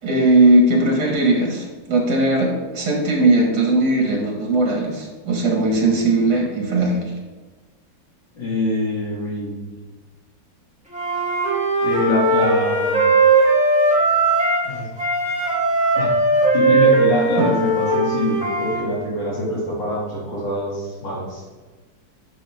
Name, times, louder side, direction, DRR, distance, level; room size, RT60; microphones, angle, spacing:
voice 1, 0.0-7.0 17.4-17.5, right 2 dB, 65° right, -1 dB, 2.6 m, -18 dB
voice 2, 8.4-9.7 11.8-13.1 14.6-14.9 16.0-21.4, left 1 dB, 85° left, -5 dB, 3.6 m, -24 dB
Wind instrument woodwind instrument, 10.9-14.7 15.0-18.8, right 2 dB, 5° right, 2.6 m, -18 dB
10.0 x 6.2 x 3.7 m, 1.3 s
omnidirectional pair, 1.9 m